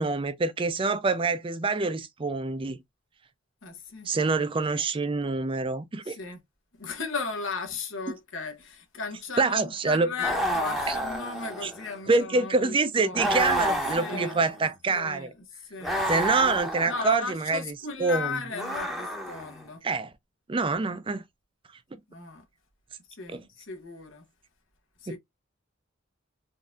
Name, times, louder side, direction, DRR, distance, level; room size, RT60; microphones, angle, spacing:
voice 1, 0.0-2.8 4.1-6.2 9.4-10.1 10.9-11.0 11.6-11.7 12.1-15.3 16.1-18.4 19.8-20.1 20.5-21.2 23.3-23.4 25.1-25.2, right 3 dB, 25° right, 0.4 m, -26 dB
voice 2, 3.6-4.1 6.0-6.4 6.7-13.6 13.9-14.4 14.9-15.3 15.6-16.0 16.9-19.8 22.1-22.4 23.2-24.2 25.0-25.2, left 4 dB, 80° left, 1.0 m, -36 dB
sound 1, 10.2-12.0 13.1-14.7 15.8-17.2 18.5-19.6, equal, ahead, 0.8 m, -30 dB
3.9 x 2.6 x 2.3 m
head